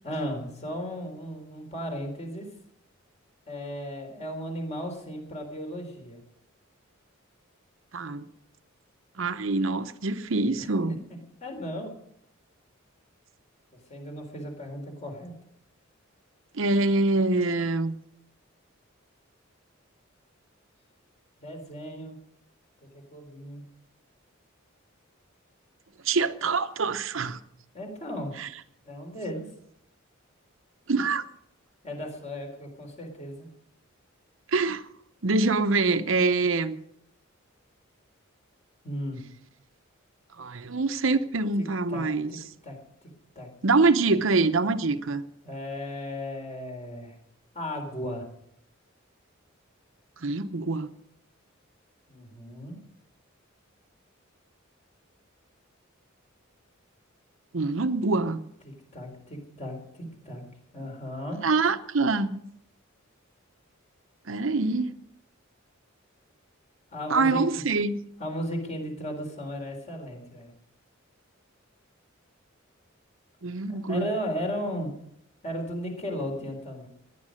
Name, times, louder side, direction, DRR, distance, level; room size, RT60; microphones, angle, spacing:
voice 1, 0.0-2.5 3.5-6.2 10.6-10.7 11.4-11.9 13.7-15.3 21.4-22.2 22.8-23.6 27.7-28.4 28.9-29.5 31.8-33.5 38.8-39.2 41.6-43.1 43.4-43.5 44.1-44.2 45.4-47.2 47.5-48.3 52.1-52.8 58.6-60.4 60.7-61.4 66.9-67.4 68.2-70.5 73.7-74.9 75.4-76.9, equal, 35° left, 3.9 m, -35 dB
voice 2, 7.9-8.2 9.2-11.0 16.5-18.0 26.0-27.4 28.4-28.5 30.9-31.2 34.5-34.8 35.2-36.8 40.4-42.3 43.6-45.2 50.2-50.9 57.5-58.4 61.4-62.4 64.3-64.9 67.1-68.0 73.4-74.1, right 3 dB, 65° right, 0.8 m, -25 dB
17.5 x 11.0 x 6.4 m
head